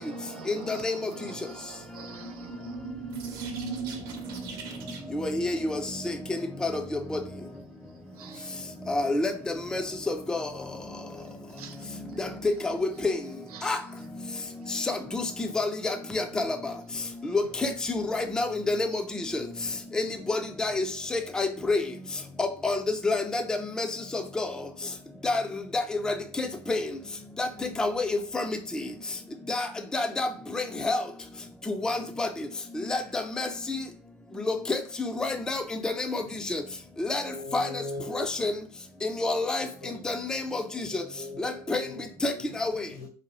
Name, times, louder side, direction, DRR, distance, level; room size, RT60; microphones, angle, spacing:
voice 1, 0.0-2.9 4.9-5.1 8.1-8.6 11.2-12.2 13.5-13.8 14.3-14.8 17.2-17.3, right 7 dB, 75° right, 0.5 m, -47 dB
sound 1, 2.1-5.3, right 6 dB, 50° right, 0.8 m, -38 dB
voice 2, 5.1-5.8 6.6-6.7 7.1-7.2 8.9-9.3 9.7-9.8 10.1-10.5 12.4-13.1 13.6-13.8 14.7-14.8 15.1-16.5 17.3-17.7 18.1-19.0 19.9-20.0 20.3-20.8 21.1-21.8 22.4-22.8 23.0-23.4 23.8-23.9 24.1-24.5 25.2-25.4 25.7-26.8 27.4-27.5 27.8-28.5 29.5-29.7 29.9-30.3 30.5-31.0 31.7-32.3 32.9-33.5 34.5-34.8 35.2-36.2 36.5-36.6 37.0-37.2 37.5-37.6 38.1-38.5 39.2-39.7 40.1-40.6 40.9-41.0 41.4-41.8 42.2-42.3 42.6-42.7, left 2 dB, 5° left, 0.3 m, -28 dB
voice 3, 37.2-38.3 39.5-40.0 40.7-42.5 42.9-43.1, left 2 dB, 70° left, 1.2 m, -40 dB
2.6 x 2.3 x 3.0 m
hypercardioid pair, 80°, 19 cm